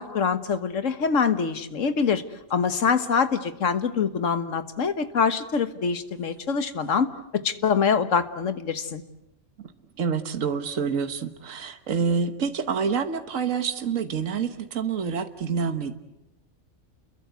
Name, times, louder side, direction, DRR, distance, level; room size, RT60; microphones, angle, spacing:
voice 1, 0.0-2.2 2.5-9.0, left 6 dB, 65° left, 10 dB, 1.7 m, -24 dB
voice 2, 10.0-15.9, right 6 dB, 70° right, 8 dB, 1.7 m, -27 dB
29.5 x 22.5 x 8.2 m, 0.89 s
omnidirectional pair, 1.4 m